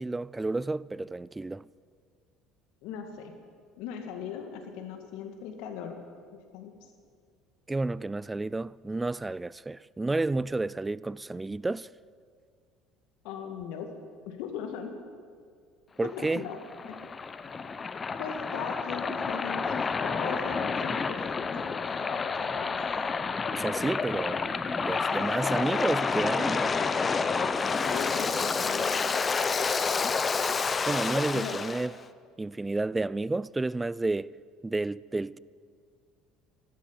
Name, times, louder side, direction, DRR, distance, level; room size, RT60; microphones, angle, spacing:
voice 1, 0.0-1.7 7.7-11.9 16.0-16.4 23.5-26.7 30.8-31.9 32.4-34.3 34.6-35.4, right 2 dB, 15° right, 0.4 m, -31 dB
voice 2, 2.8-3.3 3.8-6.0 6.5-6.7 13.2-13.9 14.3-14.9 16.2-16.6 16.9-17.0 18.2-22.8 27.8-29.1 31.3-31.6, left 7 dB, 70° left, 2.1 m, -39 dB
Waves surf, 16.1-31.9, left 5 dB, 30° left, 0.8 m, -29 dB
12.5 x 12.5 x 9.1 m
hypercardioid pair, 65°, 0 cm